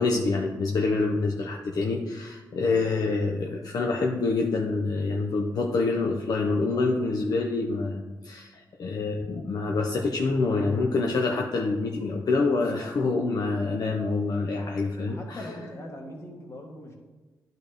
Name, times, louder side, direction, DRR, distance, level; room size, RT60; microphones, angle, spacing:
voice 1, 0.0-15.4, left 3 dB, 65° left, 1 dB, 0.6 m, -26 dB
voice 2, 15.0-16.9, left 1 dB, 45° left, 0 dB, 1.8 m, -40 dB
10.5 x 4.1 x 3.5 m, 1.2 s
cardioid pair, 70°, 7 cm